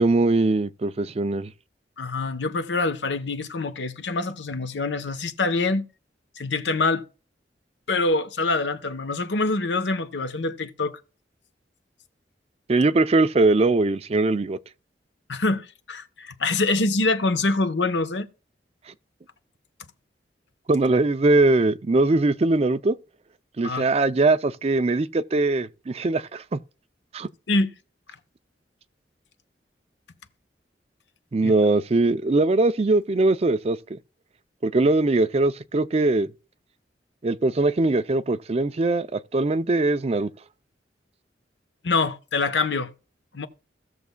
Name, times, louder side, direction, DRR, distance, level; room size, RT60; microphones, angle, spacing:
voice 1, 0.0-1.5 12.7-14.6 20.7-23.0 23.6-26.6 27.1-27.3 31.3-34.0 34.6-36.3 37.2-40.3, right 2 dB, 35° right, 0.4 m, -21 dB
voice 2, 2.0-5.9 6.4-7.0 7.9-11.0 15.3-18.3 23.6-23.9 27.5-27.7 31.4-31.5 41.8-42.9 43.3-43.5, left 3 dB, 90° left, 0.9 m, -25 dB
16.0 x 6.7 x 2.2 m
head